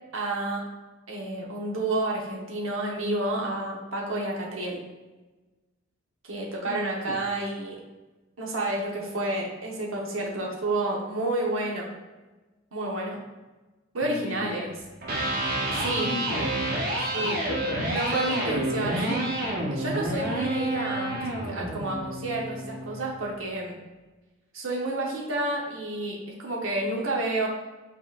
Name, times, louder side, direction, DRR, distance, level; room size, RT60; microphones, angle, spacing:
voice 1, 0.1-0.6 1.1-4.8 6.2-7.8 8.4-11.9 12.7-13.2 13.9-14.7 15.7-16.1 17.1-17.4 17.9-23.7 24.5-27.5, right 2 dB, 80° right, -2 dB, 0.9 m, -30 dB
voice 2, 6.7-7.2 14.0-14.7 15.9-18.6, left 4 dB, 80° left, 2 dB, 0.4 m, -37 dB
Electric guitar, 14.9-23.0, right 1 dB, 45° right, 0.7 m, -29 dB
5.8 x 2.9 x 2.4 m, 1.2 s
head